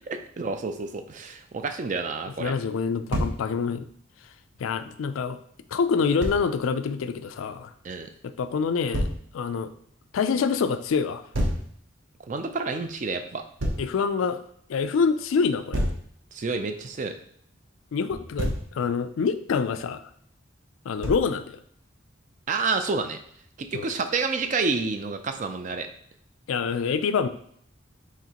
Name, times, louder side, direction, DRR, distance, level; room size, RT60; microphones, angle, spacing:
voice 1, 0.1-2.5 7.8-8.1 12.3-13.4 16.3-17.1 22.5-23.2 23.6-25.9, right 4 dB, 40° right, 7 dB, 0.4 m, -29 dB
voice 2, 2.4-3.8 4.6-5.4 5.7-7.7 8.2-9.1 9.3-9.7 10.1-11.2 13.8-14.4 14.7-15.8 17.9-20.0 20.9-21.6 23.7-23.9 26.5-27.3, left 5 dB, 85° left, 11 dB, 0.3 m, -26 dB
Thump thud, 3.1-3.4 6.2-6.4 8.9-9.2 11.3-11.7 13.6-13.9 15.7-16.1 18.1-18.7 21.0-21.3, equal, 75° right, 0.8 m, -27 dB
4.9 x 3.5 x 2.9 m, 0.65 s
head